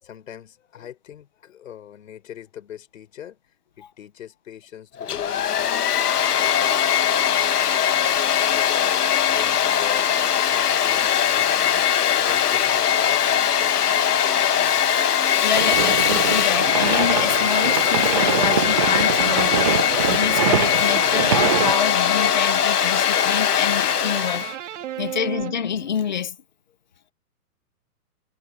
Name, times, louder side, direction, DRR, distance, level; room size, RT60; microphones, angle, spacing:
voice 1, 0.0-3.4 3.8-5.9 6.4-7.6 8.0-10.1 10.5-14.8 26.9-27.0, left 10 dB, 60° left, 4.4 m, -42 dB
Domestic sounds home sounds, 5.0-24.5, left 9 dB, 90° left, 1.6 m, -20 dB
voice 2, 15.4-24.5 25.0-26.4, left 8 dB, 30° left, 0.6 m, -27 dB
sound 1, 15.5-21.7, right 11 dB, 25° right, 0.7 m, -25 dB
sound 2, 16.0-25.9, right 11 dB, 50° right, 2.6 m, -35 dB
hypercardioid pair, 170°, 45 cm